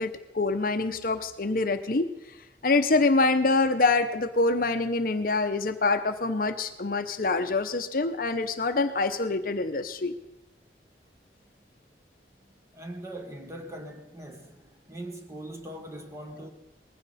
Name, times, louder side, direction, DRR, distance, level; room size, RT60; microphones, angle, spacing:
voice 1, 0.0-2.1 2.6-10.1, left 3 dB, 50° left, 0.8 m, -25 dB
voice 2, 12.7-14.6 14.9-16.5, right 1 dB, 15° right, 1.5 m, -41 dB
20.5 x 15.5 x 4.2 m
head